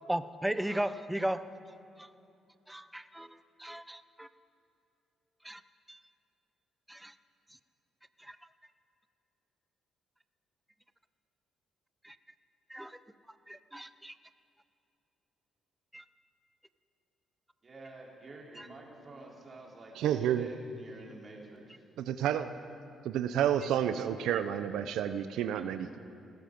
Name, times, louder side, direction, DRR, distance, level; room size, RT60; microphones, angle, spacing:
voice 1, 0.1-2.1 2.7-4.3 5.4-5.6 5.9-6.0 6.9-7.2 7.5-7.6 8.2-8.4 12.0-12.2 12.7-13.0 13.3-14.1 15.9-16.0 18.6-18.7, right 1 dB, 5° right, 12 dB, 0.6 m, -37 dB
voice 2, 17.6-21.8, right 2 dB, 35° right, -2 dB, 3.4 m, -50 dB
voice 3, 20.0-20.5 22.0-22.5 23.0-26.0, right 10 dB, 85° right, 10 dB, 0.5 m, -30 dB
18.0 x 13.0 x 5.2 m, 2.7 s
cardioid pair, 90°, 0 cm